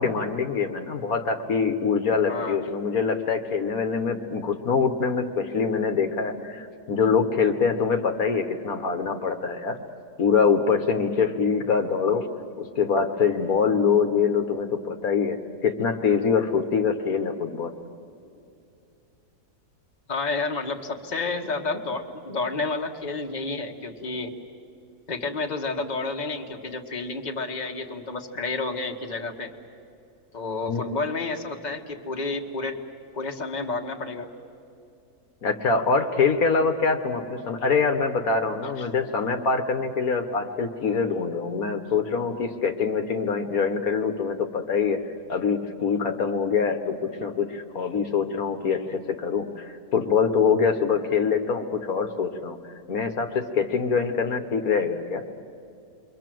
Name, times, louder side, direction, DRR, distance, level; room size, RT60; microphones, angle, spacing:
voice 1, 0.0-9.8 10.2-12.3 12.6-15.4 15.6-17.7 30.7-30.8 35.4-45.0 45.3-52.6 52.9-55.2, left 5 dB, 65° left, 6 dB, 1.6 m, -24 dB
voice 2, 2.3-2.7 20.1-24.3 25.1-29.5 30.3-32.8 33.1-34.3 38.8-38.9, left 3 dB, 30° left, 2 dB, 1.6 m, -30 dB
28.5 x 23.5 x 7.7 m, 2.6 s
omnidirectional pair, 1.7 m